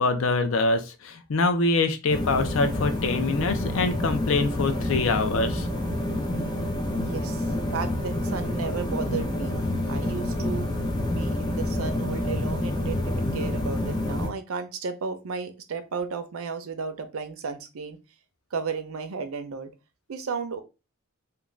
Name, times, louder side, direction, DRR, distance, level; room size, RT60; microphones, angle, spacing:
voice 1, 0.0-5.7, left 3 dB, 75° left, 0.5 m, -24 dB
sound 1, 2.1-14.3, left 1 dB, 20° left, 0.4 m, -28 dB
voice 2, 7.0-9.6 9.9-10.7 11.0-18.0 18.5-19.7 20.1-20.6, right 5 dB, 90° right, 0.5 m, -34 dB
2.4 x 2.2 x 3.1 m
head